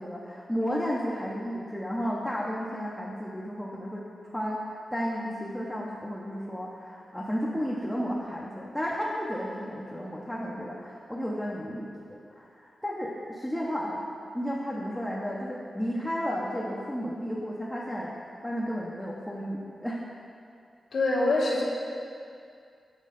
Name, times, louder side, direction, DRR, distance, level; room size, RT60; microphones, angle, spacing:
voice 1, 0.0-14.0 14.3-20.0, equal, 5° left, -5 dB, 0.6 m, -33 dB
voice 2, 20.9-21.6, left 2 dB, 85° left, -5 dB, 1.1 m, -24 dB
7.5 x 4.4 x 5.0 m, 2.4 s
wide cardioid pair, 145°, 0 cm